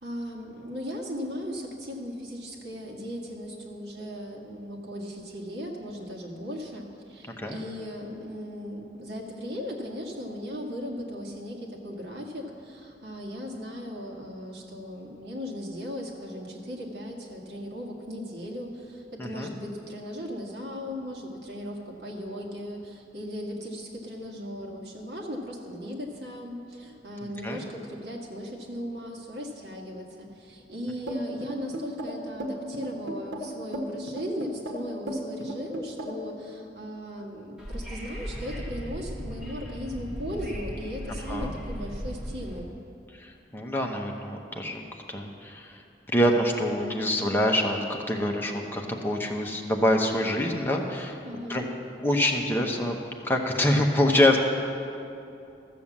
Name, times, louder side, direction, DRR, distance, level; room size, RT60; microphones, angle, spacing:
voice 1, 0.0-42.7 51.2-51.8, equal, 65° right, 0 dB, 1.8 m, -37 dB
voice 2, 19.2-19.5 27.2-27.6 41.3-41.5 43.2-44.8 45.1-45.8 46.1-51.2 51.5-51.7 52.0-53.0 53.2-54.4, left 1 dB, 10° left, 0 dB, 1.0 m, -25 dB
sound 1, 31.1-36.3, right 1 dB, 85° right, 1.4 m, -34 dB
Wind / Subway metro underground, 37.6-42.6, equal, 5° right, 2.0 m, -37 dB
13.5 x 7.1 x 7.2 m, 2.7 s
head